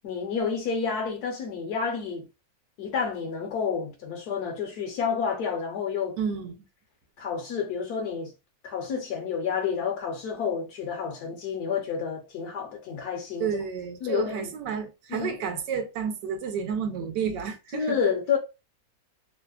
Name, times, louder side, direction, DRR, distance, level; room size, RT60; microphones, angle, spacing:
voice 1, 0.0-2.3 2.8-6.2 7.2-8.3 8.6-13.5 14.0-14.5 15.1-15.6 17.7-18.4, left 6 dB, 70° left, 1.1 m, -29 dB
voice 2, 6.2-6.5 13.4-18.0, right 7 dB, 80° right, 1.2 m, -31 dB
3.1 x 2.1 x 2.3 m
omnidirectional pair, 1.9 m